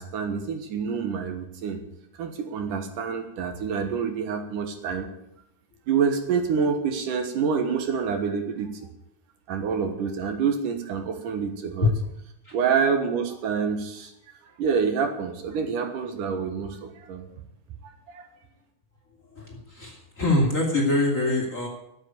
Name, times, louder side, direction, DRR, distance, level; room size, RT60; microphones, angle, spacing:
voice 1, 0.0-1.8 2.2-5.1 5.9-8.8 9.5-11.9 12.5-14.1 14.6-17.3 17.8-18.3, right 6 dB, 70° right, 6 dB, 2.8 m, -27 dB
voice 2, 19.3-21.7, left 2 dB, 25° left, 0 dB, 2.8 m, -24 dB
13.0 x 7.8 x 9.3 m, 0.80 s
omnidirectional pair, 3.9 m